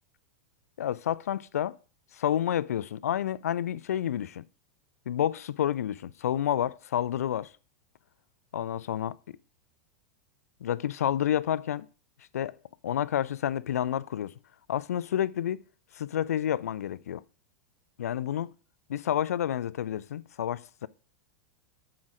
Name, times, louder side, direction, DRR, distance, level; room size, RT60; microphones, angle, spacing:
voice 1, 0.8-1.8 2.1-4.4 5.1-7.5 8.5-9.4 10.6-11.9 12.3-12.6 12.8-14.3 14.7-15.6 15.9-17.2 18.0-18.5 18.9-20.9, left 10 dB, 80° left, 0.4 m, -29 dB
7.4 x 5.0 x 6.1 m
hypercardioid pair, 105°, 8 cm